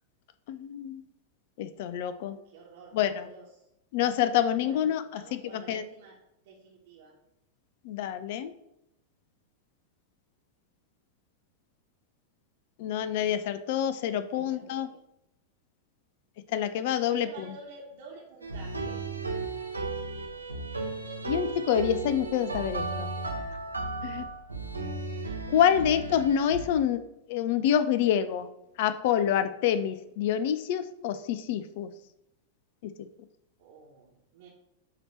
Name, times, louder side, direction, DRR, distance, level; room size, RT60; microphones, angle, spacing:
voice 1, 0.5-1.0 1.6-2.4 2.9-3.3 3.9-5.8 7.8-8.5 12.8-14.9 16.5-17.5 21.3-23.1 24.0-24.2 25.5-28.5 28.8-31.9 32.8-32.9, left 9 dB, 50° left, 12 dB, 0.3 m, -27 dB
voice 2, 2.4-3.7 4.6-4.9 5.1-6.2 6.4-7.1 14.1-15.0 17.1-19.0 33.6-34.5, right 4 dB, 55° right, -3 dB, 1.1 m, -50 dB
sound 1, 18.4-26.7, right 3 dB, 80° right, 0.8 m, -35 dB
7.9 x 2.9 x 4.3 m, 0.84 s
figure-of-eight pair, 90°, 0 cm